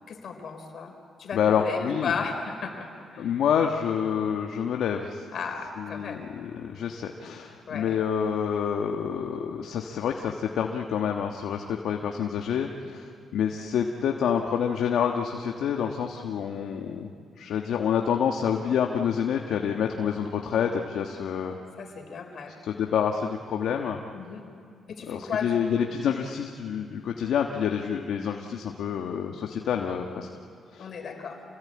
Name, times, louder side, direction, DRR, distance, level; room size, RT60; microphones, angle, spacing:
voice 1, 0.1-0.9 1.2-3.4 5.3-6.2 7.7-8.0 21.7-22.5 24.1-24.5 24.9-25.9 30.8-31.4, left 5 dB, 60° left, 4 dB, 4.1 m, -35 dB
voice 2, 1.3-2.1 3.2-5.3 5.8-17.1 17.4-21.6 22.6-24.0 25.1-30.3 30.7-30.9, left 8 dB, 75° left, 3 dB, 1.3 m, -28 dB
27.5 x 18.5 x 8.7 m, 2.3 s
cardioid pair, 80°, 0 cm